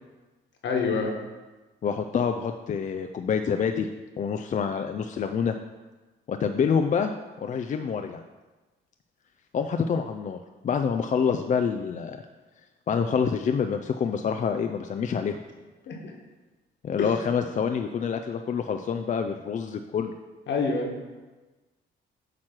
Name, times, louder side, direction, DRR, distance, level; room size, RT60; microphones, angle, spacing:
voice 1, 0.6-1.1 15.9-16.1 17.0-17.1 20.5-21.2, left 4 dB, 65° left, 1 dB, 1.4 m, -27 dB
voice 2, 1.8-3.9 4.2-5.5 6.3-7.1 7.4-8.2 9.5-12.2 12.9-15.4 16.8-20.1, left 6 dB, 40° left, 6 dB, 0.4 m, -27 dB
8.7 x 3.1 x 5.9 m, 1.2 s
cardioid pair, 90°, 20 cm